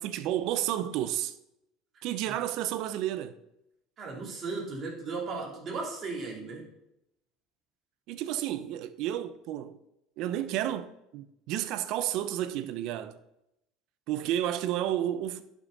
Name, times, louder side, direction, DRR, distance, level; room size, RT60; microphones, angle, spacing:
voice 1, 0.0-1.3 2.0-3.3 8.1-9.8 10.2-13.2 14.1-15.4, right 12 dB, 65° right, 0.7 m, -31 dB
voice 2, 1.9-2.3 4.0-6.7, right 4 dB, 45° right, 3.4 m, -36 dB
11.0 x 6.3 x 4.0 m
supercardioid pair, 90°, 0 cm